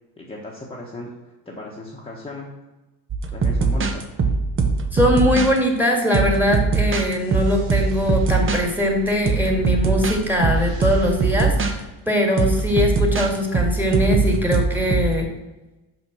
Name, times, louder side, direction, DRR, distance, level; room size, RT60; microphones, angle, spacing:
voice 1, 0.2-2.5 3.3-4.1, left 1 dB, 15° left, -3 dB, 1.2 m, -36 dB
sound 1, 3.1-5.6 6.1-8.6 9.1-11.7 12.4-15.1, right 4 dB, 30° right, 0.9 m, -21 dB
voice 2, 4.9-15.3, left 1 dB, 5° right, 1 dB, 1.9 m, -21 dB
sound 2, 7.2-12.5, left 1 dB, 85° right, 1.7 m, -40 dB
5.9 x 5.7 x 6.3 m, 1.1 s
cardioid pair, 120°, 41 cm